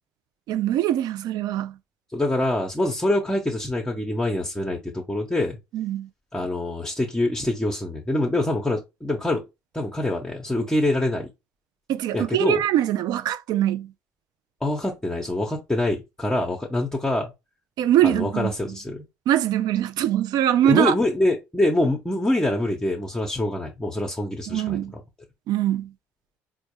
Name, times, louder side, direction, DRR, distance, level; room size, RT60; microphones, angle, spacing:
voice 1, 0.5-1.7 5.7-6.1 11.9-13.9 17.8-18.5 19.3-20.9 24.5-24.9 25.5-25.9, right 12 dB, 60° right, 0.4 m, -22 dB
voice 2, 2.1-5.6 6.3-9.4 9.7-11.3 12.1-12.6 14.6-17.3 18.0-19.1 20.6-25.0, left 1 dB, 10° left, 0.8 m, -25 dB
4.4 x 2.2 x 3.0 m
hypercardioid pair, 60°, 8 cm